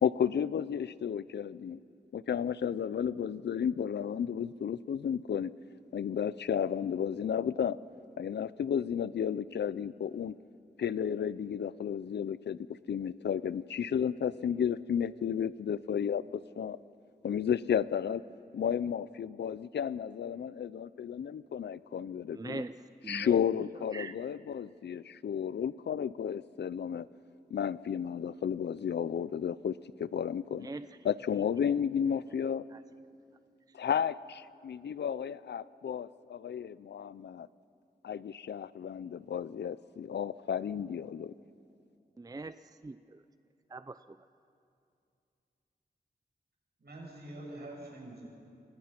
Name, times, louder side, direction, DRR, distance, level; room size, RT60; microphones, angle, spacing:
voice 1, 0.0-1.8 2.1-5.5 5.9-7.8 8.2-10.4 10.8-12.6 12.9-16.8 17.2-18.2 18.5-22.6 23.1-27.1 27.5-30.7 31.0-32.6 33.7-37.5 38.0-41.3, left 8 dB, 90° left, 18 dB, 0.5 m, -33 dB
voice 2, 22.3-23.4 23.9-24.1 30.6-30.9 32.7-32.8 42.2-43.2 43.7-44.2, right 3 dB, 20° right, 12 dB, 0.5 m, -42 dB
voice 3, 46.8-48.3, right 1 dB, 70° right, -2 dB, 7.9 m, -45 dB
28.5 x 24.0 x 5.9 m, 2.5 s
wide cardioid pair, 70°, 17 cm